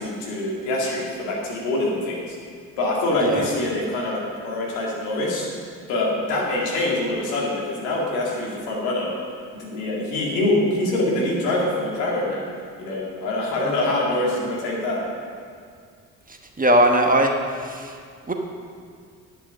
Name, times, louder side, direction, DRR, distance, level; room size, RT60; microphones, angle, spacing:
voice 1, 0.0-2.3 2.8-5.5 5.9-9.1 9.5-12.5 12.8-15.1, left 2 dB, 75° left, -3 dB, 2.5 m, -24 dB
voice 2, 16.6-17.9 18.3-18.4, right 1 dB, 20° right, 3 dB, 1.4 m, -19 dB
9.9 x 8.8 x 5.5 m, 2.1 s
hypercardioid pair, 45°, 41 cm